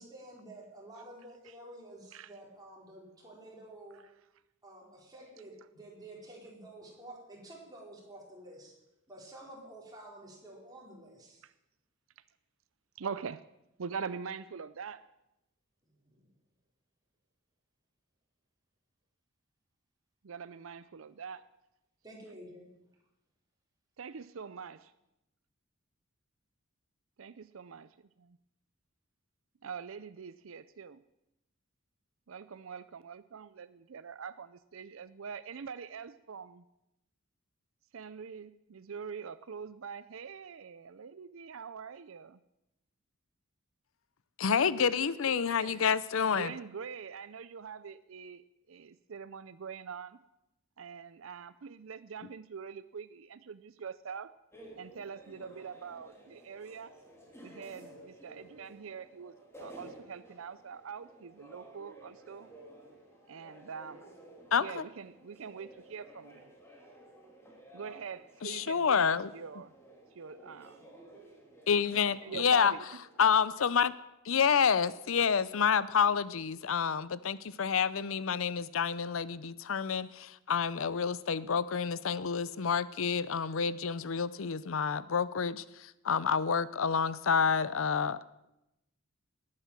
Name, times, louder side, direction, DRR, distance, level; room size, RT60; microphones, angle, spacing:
voice 1, 0.0-4.0 4.6-8.8 9.1-11.4 16.0-16.3 22.0-22.7, right 1 dB, 20° right, -3 dB, 4.8 m, -50 dB
voice 2, 13.0-13.5 13.8-15.0 20.2-21.4 24.0-24.9 27.2-28.4 29.6-31.0 32.3-36.6 37.9-42.4 45.0-45.9 46.3-50.2 50.8-54.3 54.8-57.0 57.4-59.3 59.6-62.5 63.3-64.1 64.6-66.5 67.7-69.7 70.1-70.9 71.9-72.9, right 6 dB, 70° right, 15 dB, 0.5 m, -44 dB
voice 3, 44.4-46.5 64.5-64.8 68.4-69.3 71.7-72.7 73.2-73.9 74.3-88.2, left 6 dB, 75° left, 17 dB, 0.6 m, -28 dB
sound 1, 54.5-73.6, right 1 dB, 15° left, 3.3 m, -54 dB
19.5 x 9.7 x 7.4 m, 0.89 s
head